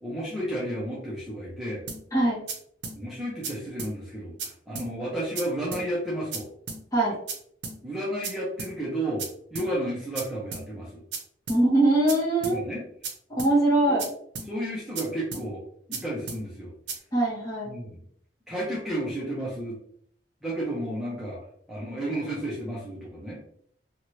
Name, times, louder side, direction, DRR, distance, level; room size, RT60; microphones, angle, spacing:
voice 1, 0.0-1.8 3.0-6.5 7.8-11.0 12.4-12.8 13.8-14.0 14.5-16.7 17.7-17.9 18.5-19.8 20.4-21.4 21.7-23.4, right 1 dB, ahead, -8 dB, 0.7 m, -32 dB
sound 1, 1.9-2.0 2.5-2.6 2.8-3.0 3.4-3.5 3.8-3.9 4.4-4.5 4.8-4.9 5.4-5.5 5.7-5.9 6.3-6.4 6.7-6.8 7.3-7.4 7.6-7.8 8.2-8.3 8.6-8.7 9.2-9.3 9.6-9.7 10.2-10.3 10.5-10.7 11.1-11.2 11.5-11.6 12.1-12.2 12.4-12.6 13.0-13.1 13.4-13.5 14.0-14.1 14.4-14.5 15.0-15.1 15.3-15.5 15.9-16.0 16.3-16.4 16.9-17.0, right 4 dB, 80° right, 0.6 m, -34 dB
voice 2, 11.5-12.6 13.3-14.1 17.1-17.7, right 2 dB, 20° left, -6 dB, 1.2 m, -22 dB
2.8 x 2.5 x 3.0 m, 0.65 s
head